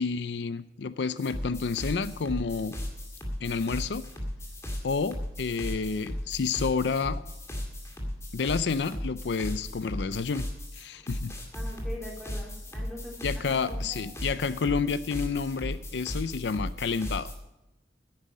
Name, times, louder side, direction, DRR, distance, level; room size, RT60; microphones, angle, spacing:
voice 1, 0.0-2.8 3.4-4.0 4.8-7.2 8.3-10.5 10.7-11.3 13.2-17.3, left 5 dB, 80° left, 14 dB, 0.5 m, -30 dB
sound 1, 1.2-17.3, equal, 15° left, 2.1 m, -36 dB
voice 2, 11.5-14.1, equal, ahead, -3 dB, 3.7 m, -43 dB
10.5 x 9.6 x 6.2 m, 0.95 s
head